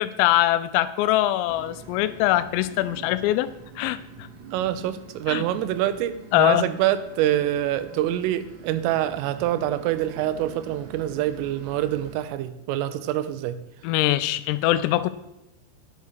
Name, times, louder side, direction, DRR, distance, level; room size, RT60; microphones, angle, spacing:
voice 1, 0.0-3.5 3.8-4.3 5.3-5.4 6.3-6.6 13.8-15.1, left 14 dB, 85° left, 14 dB, 3.3 m, -22 dB
sound 1, 1.5-12.2, right 4 dB, 65° right, 2.9 m, -46 dB
voice 2, 4.5-13.6, right 12 dB, 85° right, 13 dB, 3.2 m, -26 dB
10.0 x 7.0 x 6.5 m, 0.88 s
omnidirectional pair, 5.9 m